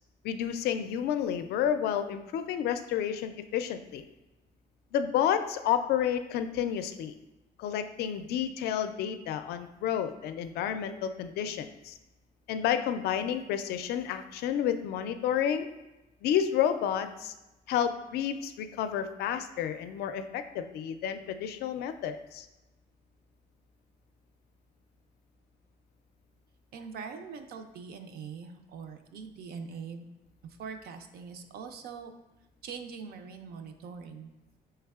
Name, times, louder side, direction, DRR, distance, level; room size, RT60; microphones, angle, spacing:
voice 1, 0.2-4.0 4.9-7.1 7.6-11.9 12.5-15.7 16.2-17.3 17.7-22.5, left 9 dB, 70° left, 10 dB, 0.4 m, -30 dB
voice 2, 26.7-30.1 30.4-32.1 32.6-34.3, right 5 dB, 70° right, 7 dB, 0.5 m, -42 dB
5.5 x 3.2 x 2.3 m, 1.0 s
cardioid pair, 110°, 17 cm